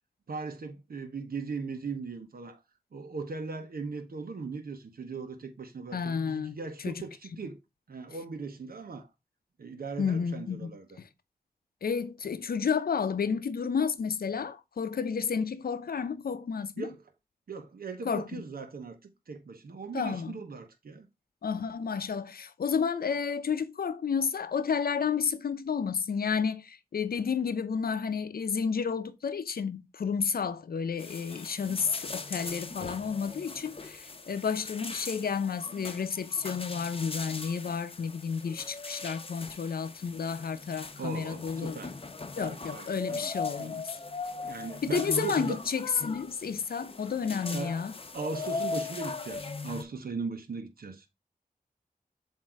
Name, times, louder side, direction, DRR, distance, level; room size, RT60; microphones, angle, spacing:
voice 1, 0.3-2.6 2.9-7.6 7.9-9.1 9.6-11.0 16.8-17.0 17.5-19.0 19.3-21.1 31.6-31.8 41.0-42.0 42.4-43.3 43.6-43.8 44.5-45.6 47.5-47.8 48.1-51.1, right 4 dB, 85° right, 1.0 m, -38 dB
voice 2, 5.9-6.6 6.8-6.9 10.0-10.7 11.8-16.9 18.0-18.4 19.9-20.4 21.4-41.8 42.3-44.0 44.8-47.9, left 6 dB, 90° left, 0.7 m, -31 dB
sound 1, 31.0-49.8, left 4 dB, 40° left, 0.7 m, -40 dB
7.5 x 2.8 x 4.6 m
wide cardioid pair, 75°, 15 cm